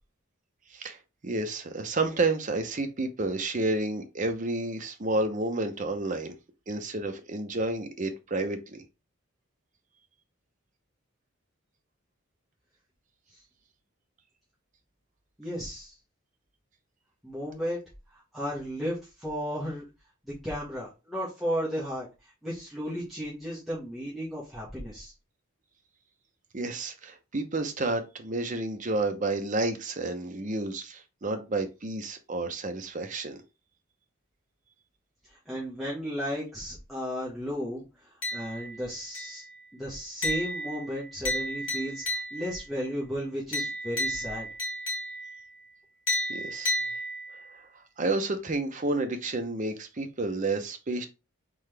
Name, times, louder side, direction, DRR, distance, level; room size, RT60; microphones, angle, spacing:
voice 1, 1.2-6.4 6.7-8.8 26.5-33.4 46.3-46.7 47.5-47.6 48.0-51.1, right 2 dB, 40° right, 0.7 m, -30 dB
voice 2, 15.4-16.0 17.2-17.8 18.1-19.8 20.2-25.1 35.3-39.4 39.7-44.5, equal, ahead, 1.3 m, -34 dB
sound 1, 38.2-38.8 39.1-39.6 40.2-42.6 43.5-45.4 46.1-47.5, left 1 dB, 65° left, 1.8 m, -32 dB
3.9 x 3.8 x 3.3 m
head